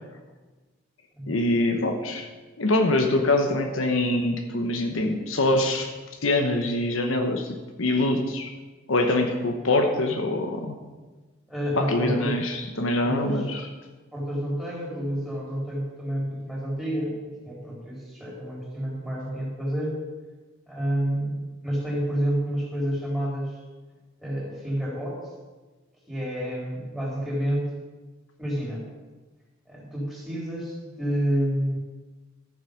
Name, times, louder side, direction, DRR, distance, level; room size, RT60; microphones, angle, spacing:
voice 1, 1.3-2.3 2.6-5.9 6.2-8.5 8.9-10.8 11.7-13.6, left 2 dB, 75° left, 4 dB, 1.1 m, -24 dB
voice 2, 11.5-12.3 13.0-13.5 14.1-20.0 20.7-23.6 24.2-25.1 26.1-27.7 28.4-28.9 29.7-31.9, equal, ahead, -6 dB, 3.9 m, -29 dB
13.0 x 7.3 x 5.1 m, 1.3 s
head